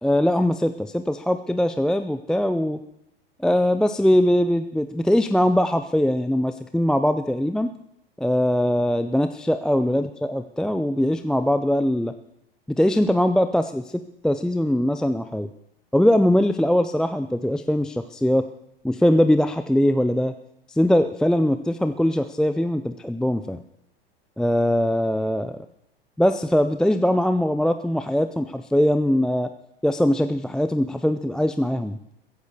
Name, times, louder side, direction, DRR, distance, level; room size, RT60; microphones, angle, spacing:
voice 1, 0.0-2.8 3.4-7.7 8.2-12.1 12.7-15.5 15.9-18.5 18.8-20.3 20.7-23.6 24.4-25.5 26.2-29.5 29.8-32.0, left 1 dB, ahead, 10 dB, 0.5 m, -21 dB
15.0 x 10.5 x 7.2 m, 0.81 s
hypercardioid pair, 95°, 31 cm